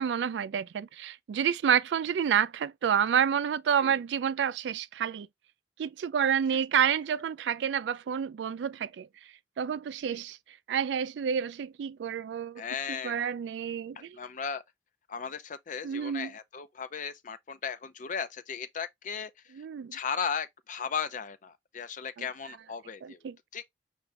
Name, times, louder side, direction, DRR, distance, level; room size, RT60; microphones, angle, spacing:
voice 1, 0.0-5.3 5.8-9.1 9.6-10.4 10.7-12.6 12.9-14.2 15.8-16.3 19.6-19.9 22.2-22.3 23.0-23.4, right 8 dB, 80° right, 0.3 m, -29 dB
voice 2, 12.6-13.2 13.9-14.6 15.1-19.6 19.9-23.2 23.5-23.7, left 6 dB, 45° left, 0.5 m, -36 dB
5.8 x 2.5 x 3.3 m
head